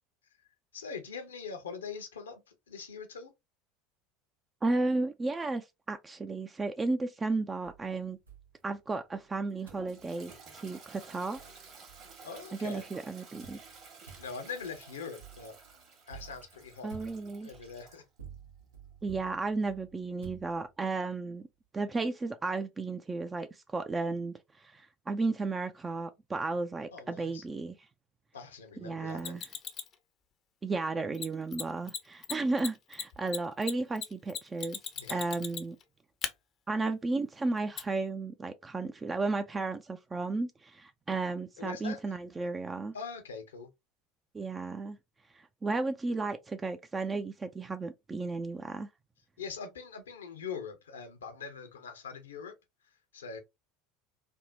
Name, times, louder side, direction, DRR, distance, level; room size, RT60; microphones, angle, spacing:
voice 1, 0.7-3.3 12.2-12.9 14.2-15.6 16.1-16.9 17.4-18.0 26.9-27.4 28.3-29.4 34.9-35.2 41.6-42.2 42.9-43.7 49.4-52.6 52.8-53.4, left 5 dB, 80° left, 0.7 m, -42 dB
voice 2, 4.6-8.2 8.6-11.4 12.6-13.6 16.8-17.5 19.0-21.5 21.7-27.7 28.8-29.4 30.6-34.8 35.1-35.8 36.7-42.9 44.3-45.0 45.3-48.9, right 3 dB, 20° right, 0.3 m, -34 dB
sound 1, 7.6-9.2 9.7-9.9 10.3-10.5 11.0-11.1 11.3-12.4 13.4-21.0, right 7 dB, 85° right, 0.9 m, -52 dB
Toilet flush, 9.5-18.1, right 5 dB, 50° right, 1.5 m, -53 dB
Mechanisms, 29.2-29.9 31.1-31.3 31.5-31.6 31.9-32.0 32.2-35.8 36.2-36.3 37.8-37.9, left 8 dB, 40° left, 0.5 m, -37 dB
3.4 x 2.1 x 2.6 m
figure-of-eight pair, 70°, 0 cm